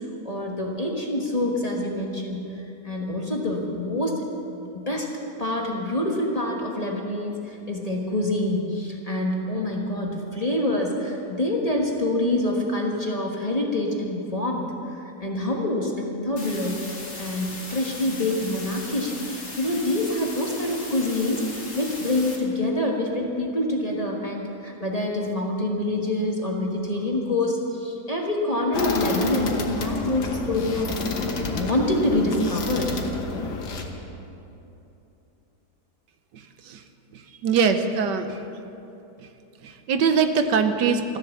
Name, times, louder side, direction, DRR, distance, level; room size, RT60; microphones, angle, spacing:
voice 1, 0.0-2.5 2.8-4.2 4.7-5.1 5.4-21.4 21.7-32.9, left 1 dB, 25° left, -1 dB, 1.3 m, -26 dB
sound 1, 16.4-22.4, left 2 dB, 40° left, 2.3 m, -38 dB
sound 2, 28.7-33.8, left 3 dB, 75° left, 1.8 m, -29 dB
voice 2, 37.4-38.4 39.6-41.2, right 6 dB, 85° right, 8 dB, 1.5 m, -22 dB
14.5 x 10.5 x 7.2 m, 2.9 s
omnidirectional pair, 1.8 m